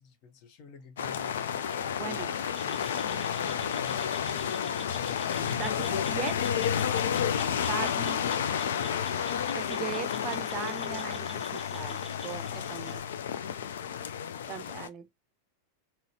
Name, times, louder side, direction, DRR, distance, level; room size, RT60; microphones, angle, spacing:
voice 1, 0.0-2.3 2.6-6.0 13.6-13.9 14.5-14.8, left 4 dB, 40° left, 0.8 m, -49 dB
sound 1, 1.0-14.9, left 8 dB, 60° left, 0.4 m, -31 dB
voice 2, 2.0-2.3 5.6-6.4 7.7-8.2 9.0-13.0 14.5-15.1, right 9 dB, 30° right, 0.5 m, -39 dB
sound 2, 2.5-13.0, left 1 dB, 15° left, 1.4 m, -48 dB
3.9 x 3.0 x 2.8 m
figure-of-eight pair, 90°, 0 cm